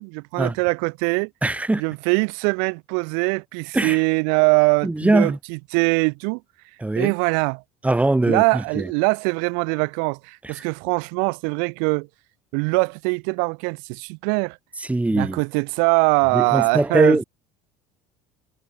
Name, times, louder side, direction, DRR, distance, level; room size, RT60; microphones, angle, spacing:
voice 1, 0.0-1.3 1.8-6.4 7.0-7.6 8.3-12.1 12.5-14.6 15.1-17.2, right 40 dB or more, 65° right, 2.1 m, -22 dB
voice 2, 1.4-1.8 3.7-4.0 4.8-5.4 6.8-7.1 7.8-8.9 14.9-15.4 16.3-17.2, right 2 dB, 10° right, 1.0 m, -21 dB
hypercardioid pair, 65°, 16 cm